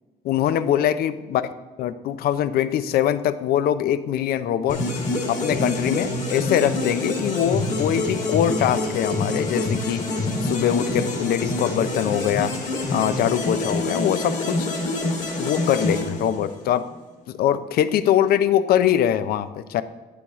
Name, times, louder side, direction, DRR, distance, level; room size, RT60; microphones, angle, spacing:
voice 1, 0.2-1.4 1.8-4.8 5.3-10.1 10.4-12.6 12.9-14.7 15.4-16.9 17.4-19.8, left 10 dB, 65° left, 13 dB, 0.5 m, -22 dB
sound 1, 4.7-16.8, left 2 dB, 45° left, 2.2 m, -26 dB
8.5 x 8.3 x 3.1 m, 1.2 s
cardioid pair, 110°, 17 cm